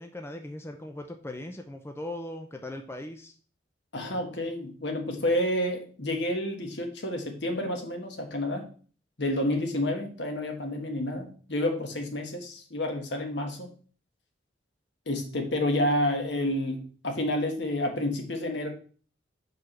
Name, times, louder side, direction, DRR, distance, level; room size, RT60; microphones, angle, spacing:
voice 1, 0.0-3.3, left 1 dB, 15° left, 4 dB, 0.5 m, -39 dB
voice 2, 3.9-8.7 9.2-13.7 15.1-18.7, left 1 dB, 70° left, 3 dB, 1.5 m, -29 dB
4.8 x 4.7 x 6.0 m, 0.42 s
head